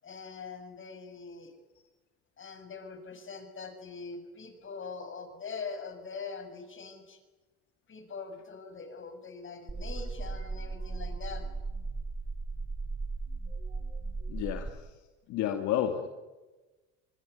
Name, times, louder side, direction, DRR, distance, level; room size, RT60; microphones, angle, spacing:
voice 1, 0.0-1.5 2.4-7.2 7.9-11.4, left 5 dB, 40° left, 8 dB, 6.6 m, -43 dB
sound 1, 9.7-14.7, right 3 dB, 25° right, 6.1 m, -36 dB
voice 2, 14.3-15.0 15.3-16.1, left 10 dB, 65° left, 6 dB, 2.4 m, -31 dB
26.0 x 21.0 x 9.4 m, 1.2 s
hypercardioid pair, 75°, 31 cm